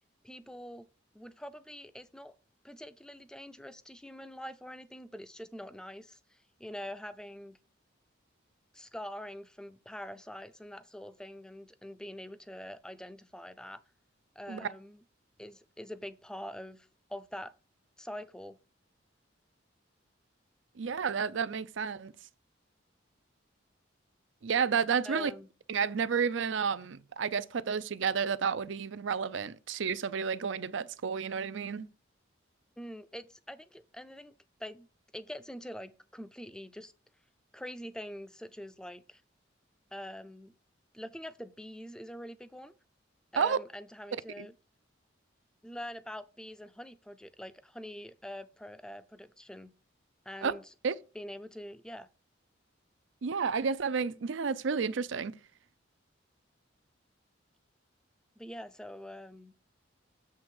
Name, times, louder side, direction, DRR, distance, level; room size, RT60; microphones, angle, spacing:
voice 1, 0.2-0.9 1.1-2.3 2.6-7.6 8.7-13.8 14.4-15.0 15.4-17.5 18.0-18.6 25.0-25.5 32.8-34.3 34.6-34.9 35.1-36.9 37.5-39.2 39.9-40.5 40.9-42.7 43.3-44.5 45.6-49.7 50.3-50.7 51.1-52.1 58.4-59.5, equal, 5° left, 0.4 m, -44 dB
voice 2, 20.8-22.1 24.4-25.3 25.7-31.9 43.4-43.6 44.4-44.5 50.4-50.5 50.8-51.0 53.2-55.3, right 6 dB, 70° right, 0.5 m, -31 dB
7.6 x 3.5 x 6.3 m
head